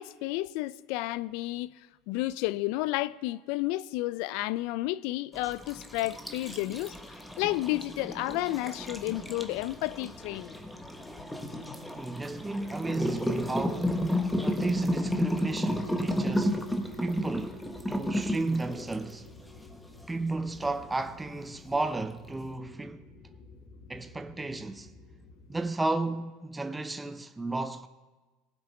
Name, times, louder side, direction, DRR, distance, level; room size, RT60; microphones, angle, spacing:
voice 1, 0.0-1.7 2.1-6.9 7.4-10.6, left 17 dB, 65° left, 0.3 m, -31 dB
sound 1, 5.3-19.1, equal, 5° left, 1.2 m, -32 dB
sound 2, 9.0-25.7, left 3 dB, 35° left, 1.8 m, -52 dB
voice 2, 11.9-14.0 14.4-16.7 17.0-19.3 20.1-23.1 23.9-24.9 25.5-27.9, right 2 dB, 10° right, 0.6 m, -33 dB
19.0 x 7.7 x 3.5 m
hypercardioid pair, 95°, 0 cm